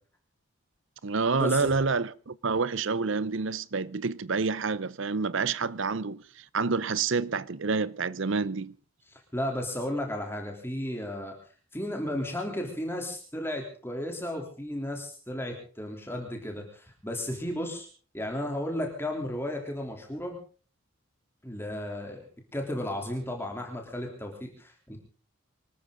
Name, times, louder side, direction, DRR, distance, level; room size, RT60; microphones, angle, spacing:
voice 1, 1.0-8.7, right 4 dB, 60° right, 0.7 m, -28 dB
voice 2, 9.1-11.4 11.7-17.9 18.1-20.4 21.4-22.2 22.5-25.0, left 1 dB, 10° left, 3.3 m, -34 dB
25.5 x 13.5 x 3.9 m
head